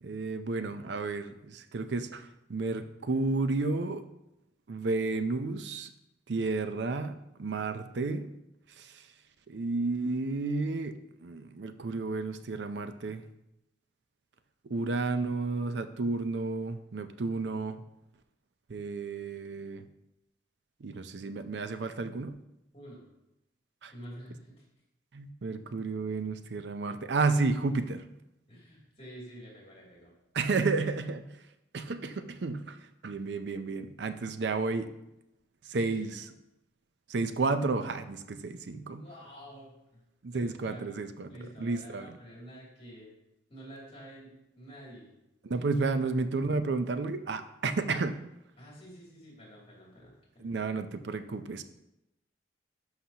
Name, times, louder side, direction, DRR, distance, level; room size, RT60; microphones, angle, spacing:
voice 1, 0.0-4.0 4.7-5.9 6.3-8.3 8.8-9.0 9.5-13.2 14.7-17.8 18.7-19.8 20.8-22.4 23.8-23.9 25.1-28.0 30.3-31.3 31.7-32.8 33.0-34.9 35.7-36.2 37.1-39.0 40.2-41.3 41.6-42.2 45.4-48.2 50.4-51.6, right 3 dB, 70° right, 10 dB, 0.5 m, -32 dB
voice 2, 23.9-24.6 28.5-30.1 35.7-36.0 38.8-40.0 40.3-41.0 41.3-43.1 43.5-45.1 45.6-45.7 48.6-50.5, equal, 35° left, -4 dB, 2.7 m, -49 dB
11.5 x 5.8 x 2.9 m, 0.88 s
head